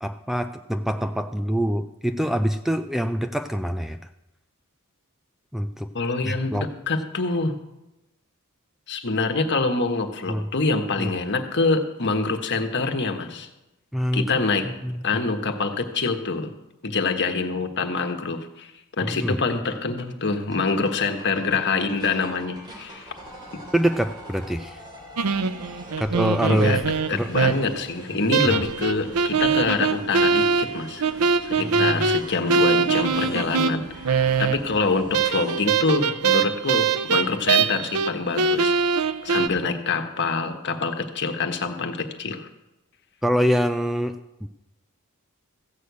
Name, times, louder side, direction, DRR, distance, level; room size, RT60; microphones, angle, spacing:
voice 1, 0.0-4.0 5.5-5.9 6.2-6.7 10.3-10.4 11.0-11.1 13.9-15.2 19.0-19.4 23.7-24.8 26.0-26.8 27.1-27.3 28.5-28.6 31.6-32.0 43.2-44.5, equal, ahead, 9 dB, 0.4 m, -25 dB
voice 2, 5.9-7.5 8.9-13.5 14.1-14.7 15.0-16.5 16.8-23.1 26.4-31.0 31.4-38.7 39.2-42.5, left 3 dB, 55° left, 6 dB, 1.3 m, -25 dB
sound 1, 19.3-19.4 19.6-19.7 20.0-20.1 20.3-35.6, right 1 dB, 20° right, 3.1 m, -43 dB
sound 2, 25.2-27.8 28.3-34.8 35.1-38.1 38.4-39.5, right 5 dB, 85° right, 0.6 m, -22 dB
15.0 x 6.4 x 8.3 m, 0.96 s
head